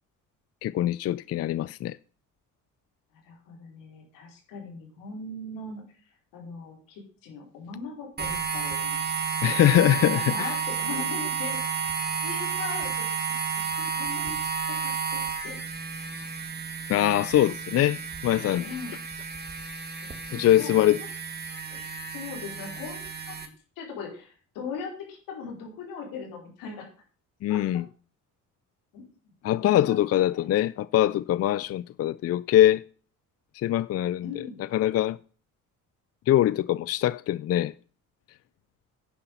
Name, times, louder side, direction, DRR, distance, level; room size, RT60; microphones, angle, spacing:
voice 1, 0.6-2.0 9.4-10.5 16.9-18.6 20.3-21.0 27.4-27.8 29.4-32.8 33.5-34.4 34.7-35.2 36.3-37.7, left 13 dB, 50° left, 0.4 m, -23 dB
voice 2, 3.1-9.1 9.8-11.9 12.2-13.1 13.7-14.4 14.7-15.7 16.0-16.1 18.6-19.0 20.0-21.1 21.7-23.5 23.8-26.9 27.5-27.6 28.9-29.0 29.5-30.5 34.2-34.6, left 5 dB, 90° left, 4.8 m, -40 dB
sound 1, 8.2-23.5, right 6 dB, 30° right, 2.3 m, -32 dB
10.0 x 9.7 x 5.5 m
cardioid pair, 90°, 32 cm